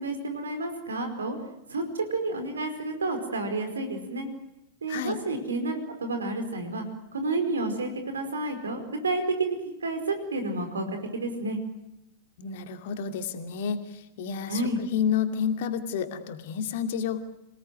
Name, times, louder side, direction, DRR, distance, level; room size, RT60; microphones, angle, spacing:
voice 1, 0.0-1.4 1.7-4.3 4.8-6.8 7.1-11.6 14.5-14.8, right 2 dB, 70° right, 7 dB, 4.9 m, -30 dB
voice 2, 12.4-17.2, left 7 dB, 55° left, 7 dB, 2.5 m, -30 dB
27.5 x 18.5 x 9.4 m, 0.86 s
figure-of-eight pair, 90°, 0 cm